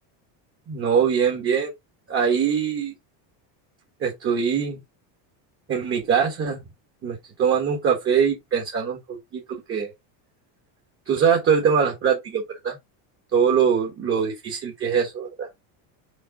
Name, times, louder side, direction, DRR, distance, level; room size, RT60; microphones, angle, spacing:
voice 1, 0.7-1.7 2.1-2.9 4.0-4.8 5.7-6.6 7.0-9.9 11.1-12.8 13.3-15.5, right 7 dB, 25° right, 1.4 m, -22 dB
5.4 x 4.8 x 3.8 m
cardioid pair, 170°, 48 cm